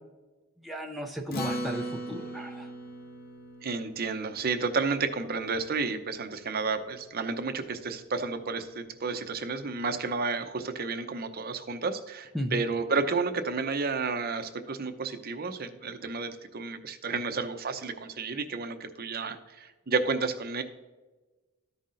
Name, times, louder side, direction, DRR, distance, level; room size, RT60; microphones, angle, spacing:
voice 1, 0.6-2.7 12.3-12.6, equal, ahead, 3 dB, 0.5 m, -35 dB
Acoustic guitar, 1.3-6.0, equal, 45° left, 0.8 m, -39 dB
voice 2, 3.6-20.6, right 4 dB, 45° right, 8 dB, 0.7 m, -31 dB
14.0 x 5.6 x 2.6 m, 1.2 s
head